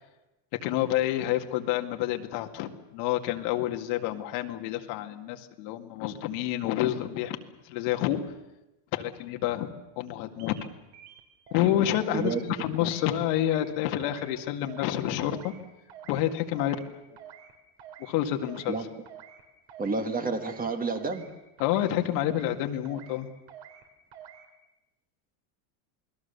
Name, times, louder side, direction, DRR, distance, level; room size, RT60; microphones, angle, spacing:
voice 1, 0.6-7.4 7.6-8.2 8.9-9.7 10.0-10.7 11.5-15.5 16.1-16.8 18.0-18.8 21.6-23.3, left 12 dB, 75° left, 4 dB, 2.2 m, -28 dB
sound 1, 10.4-10.7 10.9-11.7 12.0-12.5 12.7-13.1 13.4-13.7 14.0-14.4 14.6-15.0 15.3-15.6 15.9-16.2 16.5-16.9 17.2-17.5 17.8-18.1 18.4-18.8 19.1-19.4 19.7-20.0 20.3-20.7 20.9-21.3 21.6-21.9 22.2-22.6 22.8-23.2 23.5-23.8 24.1-24.5, right 9 dB, 60° right, 3.5 m, -48 dB
voice 2, 19.8-21.3, right 4 dB, 15° right, 6 dB, 1.6 m, -29 dB
28.5 x 20.5 x 7.0 m, 1.0 s
cardioid pair, 150°, 50 cm